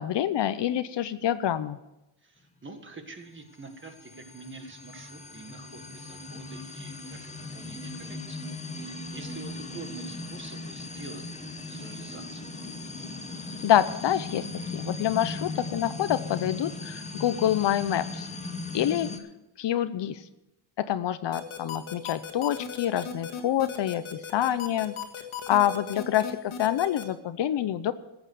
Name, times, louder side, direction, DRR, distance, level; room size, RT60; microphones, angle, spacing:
voice 1, 0.0-1.8 13.6-14.5 14.7-18.3 18.7-19.1 19.6-20.2 20.8-24.9 25.5-27.9, left 11 dB, 60° left, 13 dB, 0.7 m, -26 dB
voice 2, 2.2-8.4 8.7-11.2 11.5-12.5, right 3 dB, 25° right, 6 dB, 1.7 m, -46 dB
sound 1, 3.5-19.2, left 2 dB, 15° left, 1.0 m, -38 dB
sound 2, 21.3-27.0, left 8 dB, 80° left, 1.7 m, -37 dB
14.5 x 8.1 x 6.6 m, 0.94 s
cardioid pair, 130°, 47 cm